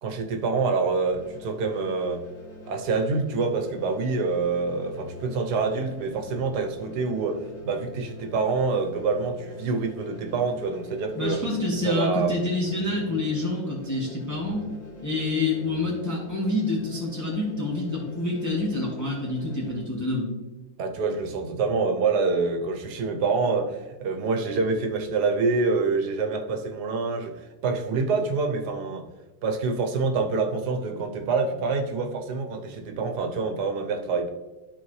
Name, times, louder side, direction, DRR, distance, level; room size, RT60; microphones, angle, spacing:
voice 1, 0.0-2.2 2.7-11.4 11.8-12.5 20.8-29.0 29.4-34.3, right 4 dB, 80° right, 4 dB, 1.4 m, -26 dB
sound 1, 1.1-19.8, left 3 dB, 50° left, 2.7 m, -44 dB
voice 2, 11.1-14.6 15.0-20.3, left 2 dB, 10° left, -4 dB, 1.3 m, -27 dB
12.0 x 4.1 x 3.1 m, 1.1 s
omnidirectional pair, 1.7 m